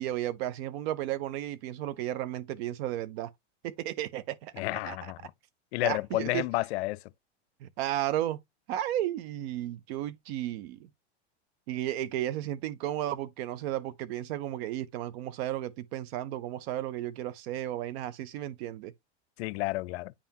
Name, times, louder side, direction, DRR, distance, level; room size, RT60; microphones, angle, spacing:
voice 1, 0.0-3.3 3.6-4.5 4.8-5.1 5.8-6.5 7.6-8.4 8.7-10.9 11.7-18.9, right 13 dB, 65° right, 0.7 m, -33 dB
voice 2, 4.6-5.2 5.7-7.0 19.4-20.1, left 20 dB, 70° left, 0.5 m, -31 dB
9.9 x 3.6 x 2.8 m
supercardioid pair, 120°, 34 cm